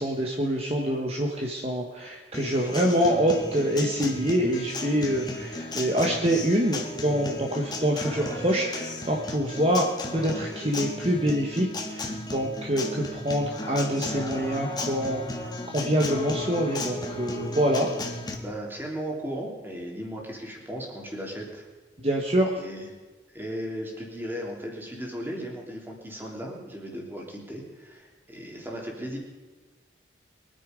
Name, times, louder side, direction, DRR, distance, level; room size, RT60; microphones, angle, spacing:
voice 1, 0.0-9.9 10.1-15.2 15.7-17.9 22.0-22.6, equal, 30° right, 0 dB, 1.4 m, -26 dB
Acoustic guitar, 2.3-18.3, left 2 dB, 20° left, 1.6 m, -35 dB
voice 2, 18.4-21.7 22.6-22.9 23.3-29.2, equal, 10° right, -1 dB, 3.0 m, -36 dB
23.5 x 9.8 x 5.2 m, 1.3 s
head